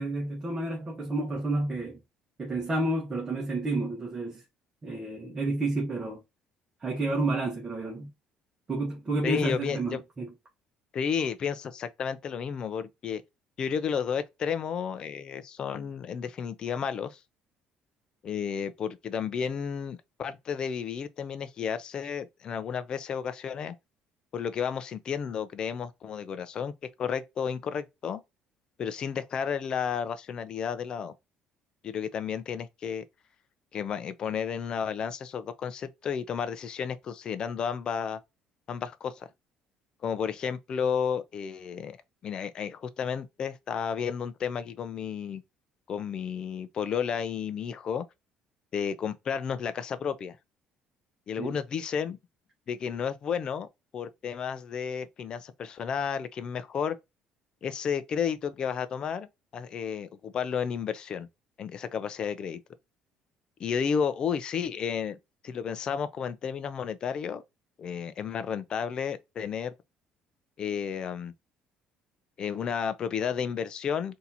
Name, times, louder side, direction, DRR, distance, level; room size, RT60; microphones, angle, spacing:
voice 1, 0.0-2.0 2.4-4.4 4.8-6.2 6.8-8.1 8.7-10.3 51.4-51.5, right 2 dB, 25° right, 1.3 m, -30 dB
voice 2, 9.2-10.0 10.9-13.2 13.6-17.2 18.2-23.7 24.3-26.7 27.0-28.2 28.8-31.1 31.8-33.0 33.7-38.2 38.7-39.3 40.0-42.0 42.2-45.4 45.9-48.0 48.7-50.4 51.3-52.2 52.7-53.7 53.9-57.0 57.6-59.3 59.5-61.3 61.6-62.6 63.6-65.2 65.4-67.4 67.8-69.7 70.6-71.3 72.4-74.2, left 7 dB, 40° left, 0.6 m, -32 dB
4.1 x 2.9 x 4.2 m
cardioid pair, 130°, 2 cm